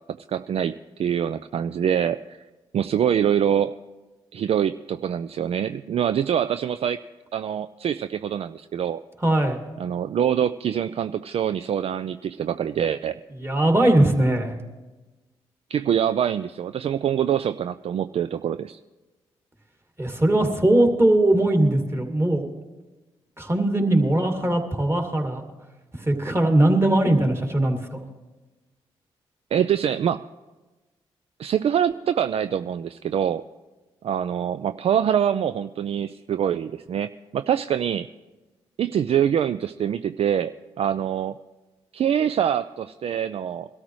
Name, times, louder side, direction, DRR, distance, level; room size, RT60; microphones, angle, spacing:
voice 1, 0.3-2.4 2.7-3.7 4.3-7.0 7.3-9.0 9.8-13.2 15.7-18.8 29.5-30.3 31.4-33.4 34.0-38.1 38.8-41.4 41.9-43.7, right 9 dB, 55° right, 12 dB, 0.4 m, -24 dB
voice 2, 9.2-9.6 13.4-14.5 20.0-22.5 23.4-25.4 26.0-28.0, right 1 dB, 20° right, 3 dB, 2.4 m, -20 dB
21.5 x 13.0 x 3.1 m, 1.2 s
hypercardioid pair, 40°, 13 cm